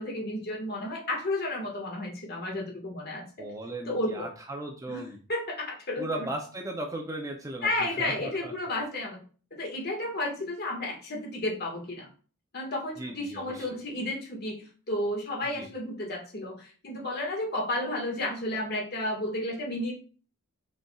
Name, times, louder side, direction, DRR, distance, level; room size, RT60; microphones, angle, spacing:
voice 1, 0.0-3.2 3.8-4.3 4.9-5.0 5.3-6.3 7.6-9.2 9.5-12.1 12.5-19.9, left 1 dB, 50° left, -1 dB, 1.6 m, -32 dB
voice 2, 3.4-5.2 6.0-8.5 13.0-13.8 15.5-15.7, right 1 dB, 15° right, 3 dB, 0.6 m, -37 dB
5.2 x 4.2 x 2.3 m, 0.39 s
head